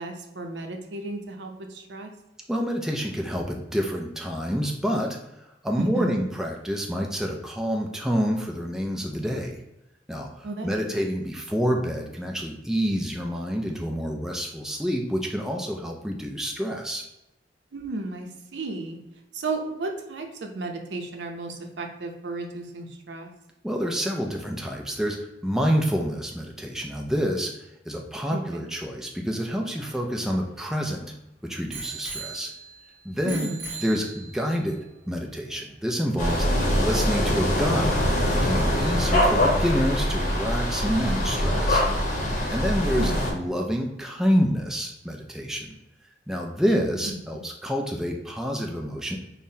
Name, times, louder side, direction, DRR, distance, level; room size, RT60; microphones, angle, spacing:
voice 1, 0.0-2.1 5.8-6.2 10.4-10.7 17.7-19.0 19.3-23.3 28.3-28.7 33.2-33.7 36.5-36.8 42.8-43.4 47.0-47.2, right 2 dB, 80° right, 3 dB, 0.5 m, -34 dB
voice 2, 2.5-5.2 5.6-9.6 10.1-17.0 23.6-25.2 25.4-27.5 27.9-31.1 31.4-32.5 33.0-33.5 33.8-34.8 35.1-36.5 36.8-38.0 38.3-41.8 42.3-45.8 46.3-49.2, equal, 5° right, 0 dB, 0.3 m, -28 dB
Bicycle bell, 29.5-31.1 31.7-32.9 33.3-34.5 35.3-35.4, right 4 dB, 60° right, 0.9 m, -39 dB
sound 1, 36.2-43.3, left 1 dB, 45° left, 0.8 m, -23 dB
5.5 x 2.1 x 2.7 m, 0.89 s
head